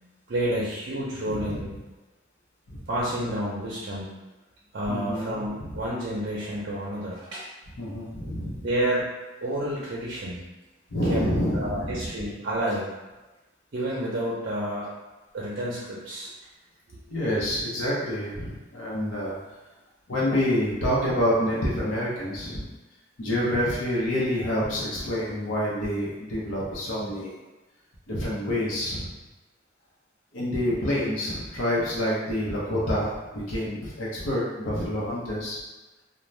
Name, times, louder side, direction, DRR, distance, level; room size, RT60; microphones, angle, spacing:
voice 1, 0.0-1.7 2.9-4.2 4.7-7.4 8.6-9.0 9.4-10.4 11.1-11.2 11.5-12.9 13.7-14.9 15.3-16.3 16.9-17.0, right 1 dB, 55° right, -6 dB, 0.5 m, -30 dB
voice 2, 1.3-1.6 2.7-2.8 4.9-5.7 7.8-8.7 10.9-12.1 17.1-19.4 20.1-22.7 23.2-27.4 28.1-29.1 30.3-35.6, equal, 90° left, -6 dB, 0.7 m, -27 dB
2.6 x 2.1 x 3.1 m, 1.1 s
head